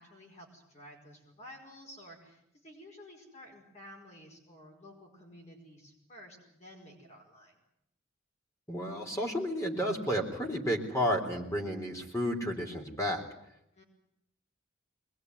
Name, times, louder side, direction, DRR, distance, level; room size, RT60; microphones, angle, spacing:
voice 1, 0.0-7.5 13.7-13.8, equal, 35° left, 0 dB, 5.2 m, -52 dB
voice 2, 8.7-13.2, equal, 15° left, 1 dB, 3.8 m, -32 dB
23.0 x 21.0 x 9.6 m, 0.81 s
head